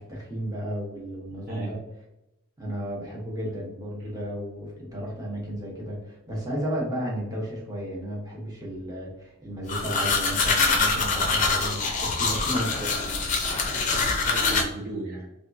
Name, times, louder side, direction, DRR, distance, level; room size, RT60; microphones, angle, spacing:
voice 1, 0.0-1.8 2.6-13.0, equal, 20° right, -4 dB, 0.9 m, -33 dB
voice 2, 1.3-1.7 12.2-12.4 13.7-15.3, right 2 dB, 45° right, -2 dB, 0.5 m, -37 dB
sound 1, 9.7-14.6, left 4 dB, 35° left, 0.5 m, -24 dB
3.5 x 2.3 x 2.6 m, 0.90 s
head